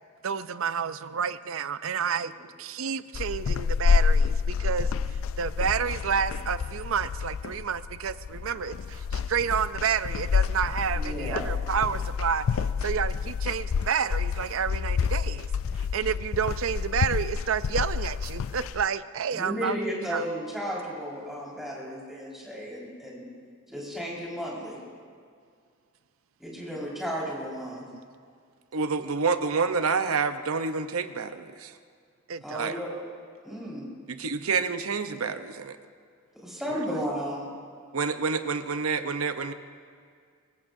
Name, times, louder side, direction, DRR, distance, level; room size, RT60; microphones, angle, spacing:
voice 1, 0.2-2.3 2.6-15.5 15.7-19.8 20.1-20.3 26.6-26.8 32.3-32.7 36.7-36.8, right 7 dB, 65° right, 14 dB, 0.5 m, -30 dB
sound 1, 3.1-18.9, left 6 dB, 70° left, 0.4 m, -28 dB
voice 2, 10.9-11.5 19.3-23.2 23.7-24.8 26.4-27.8 32.4-32.9 33.4-33.9 36.4-37.5, equal, ahead, -6 dB, 4.8 m, -34 dB
voice 3, 28.7-31.8 32.5-32.8 34.1-35.8 37.9-39.5, right 5 dB, 90° right, 9 dB, 0.8 m, -28 dB
24.0 x 20.5 x 2.7 m, 2.1 s
head